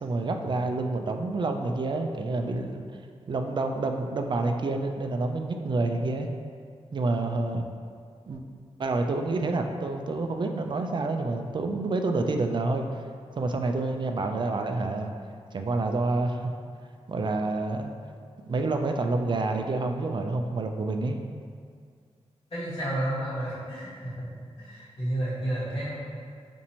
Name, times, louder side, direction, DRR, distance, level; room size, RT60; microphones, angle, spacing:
voice 1, 0.0-2.8 3.3-6.3 6.9-7.6 8.3-8.4 8.8-12.9 13.4-15.1 15.5-16.5 17.1-17.9 18.4-21.2, right 3 dB, 45° right, 5 dB, 0.3 m, -28 dB
voice 2, 22.5-24.3 24.6-25.9, right 1 dB, 45° left, -11 dB, 1.3 m, -31 dB
2.8 x 2.6 x 4.2 m, 2.1 s
cardioid pair, 65°, 12 cm